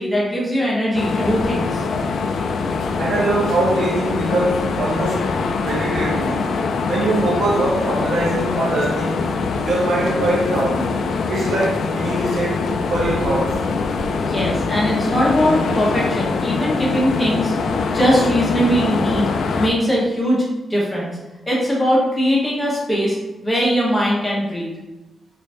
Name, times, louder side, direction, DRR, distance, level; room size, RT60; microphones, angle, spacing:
voice 1, 0.0-1.9 14.3-17.5 17.9-19.2 19.6-20.4 20.7-21.1 21.4-23.2 23.4-24.7, equal, 15° left, 0.9 m, -20 dB
sound 1, 0.9-19.7, left 4 dB, 75° left, 0.3 m, -23 dB
voice 2, 3.0-5.4 5.6-6.4 6.9-9.3 9.6-10.9 11.3-12.6 12.9-13.6, right 2 dB, 60° right, 0.7 m, -22 dB
3.9 x 2.6 x 3.3 m
wide cardioid pair, 170°, 0 cm